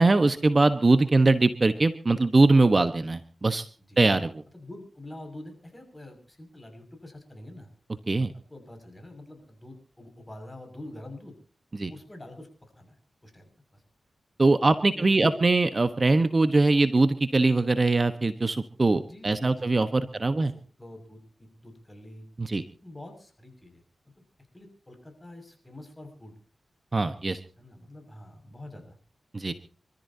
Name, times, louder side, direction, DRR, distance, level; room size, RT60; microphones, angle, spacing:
voice 1, 0.0-3.7 4.0-4.4 8.1-8.3 11.8-11.9 14.4-20.5 22.4-22.6 26.9-27.4 29.3-29.5, right 3 dB, 40° right, 10 dB, 1.2 m, -22 dB
voice 2, 4.5-7.7 8.5-11.4 11.9-13.0 13.2-13.8 14.9-15.4 19.0-20.5 20.8-22.3 22.8-23.8 24.5-26.3 27.6-29.0, left 1 dB, 20° left, 6 dB, 6.2 m, -45 dB
27.0 x 14.0 x 2.8 m, 0.39 s
cardioid pair, 50°, 0 cm